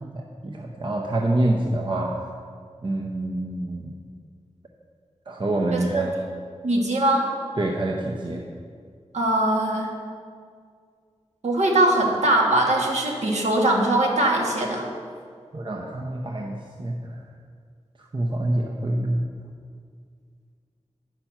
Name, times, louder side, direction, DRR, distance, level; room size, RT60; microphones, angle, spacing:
voice 1, 0.0-2.2 2.8-3.9 5.3-6.1 7.6-8.4 15.5-17.2 18.1-19.3, right 1 dB, 40° right, 0 dB, 0.7 m, -26 dB
voice 2, 5.7-6.0 6.6-7.2 9.1-9.9 11.4-14.9, right 1 dB, 70° right, -1 dB, 1.6 m, -21 dB
9.0 x 5.8 x 5.9 m, 2.1 s
wide cardioid pair, 85°, 12 cm